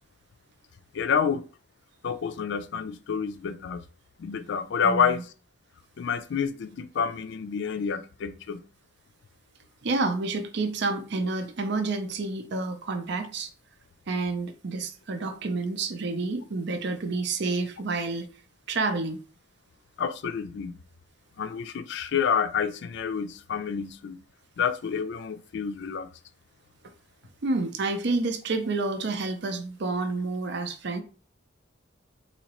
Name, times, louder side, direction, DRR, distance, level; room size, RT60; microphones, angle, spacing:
voice 1, 0.9-1.5 2.0-3.8 4.2-5.3 6.0-8.6 20.0-20.8 21.4-24.2 24.6-26.1, left 6 dB, 65° left, 0.4 m, -28 dB
voice 2, 4.8-5.2 9.8-13.5 14.1-18.3 18.7-19.2 27.4-31.0, right 3 dB, 60° right, 0.5 m, -29 dB
4.0 x 2.8 x 2.9 m
head